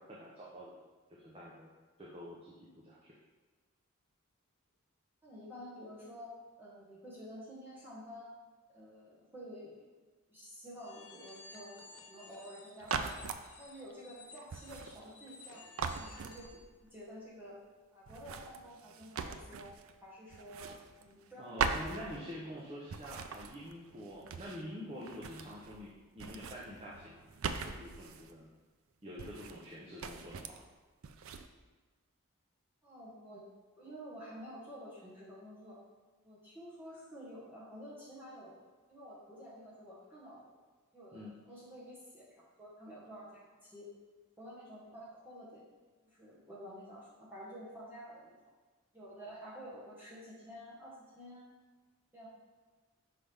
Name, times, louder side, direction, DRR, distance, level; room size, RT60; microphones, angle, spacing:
voice 1, 0.1-0.7 1.2-1.7 2.0-2.6 2.8-3.0 21.4-27.2 27.6-28.4 29.0-30.6 41.1-41.3, equal, 25° right, -5 dB, 0.7 m, -46 dB
voice 2, 5.2-8.3 8.7-9.9 10.3-11.8 12.1-13.2 13.6-15.6 16.0-16.6 16.9-17.6 17.9-19.7 20.0-20.7 21.0-22.3 32.8-33.4 33.8-35.8 36.2-38.6 38.9-40.5 40.9-42.2 42.6-43.9 44.4-45.7 46.0-48.4 48.9-51.5 52.1-52.3, equal, 10° right, -8 dB, 1.3 m, -50 dB
sound 1, 10.8-16.6, left 3 dB, 90° left, 0.9 m, -55 dB
sound 2, 12.8-13.5 14.5-15.5 15.8-16.8 18.1-20.0 20.3-21.3 21.6-22.6 22.9-24.7 25.0-25.9 26.1-28.3 29.2-29.7 30.0-30.6 31.0-31.5, right 5 dB, 75° right, 0.4 m, -40 dB
5.7 x 5.0 x 3.4 m, 1.4 s
head